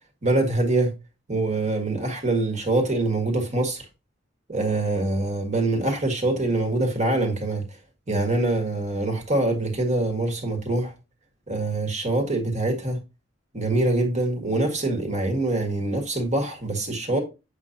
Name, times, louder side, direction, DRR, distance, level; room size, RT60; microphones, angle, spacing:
voice 1, 0.2-0.9 1.3-3.9 4.5-7.6 8.1-10.9 11.5-13.0 13.5-17.2, right 2 dB, 40° right, 1.8 m, -24 dB
7.9 x 5.2 x 2.7 m
head